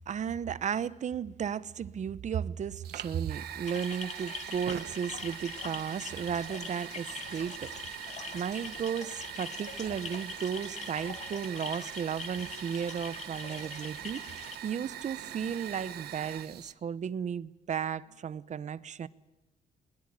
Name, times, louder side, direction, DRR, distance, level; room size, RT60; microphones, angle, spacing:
voice 1, 0.1-7.7 8.3-19.1, right 8 dB, 50° right, 0.9 m, -34 dB
Fire, 2.8-16.7, right 11 dB, 90° right, 1.3 m, -43 dB
sound 1, 3.7-14.6, left 5 dB, 45° left, 2.8 m, -43 dB
21.5 x 21.5 x 8.8 m
cardioid pair, 120°, 16 cm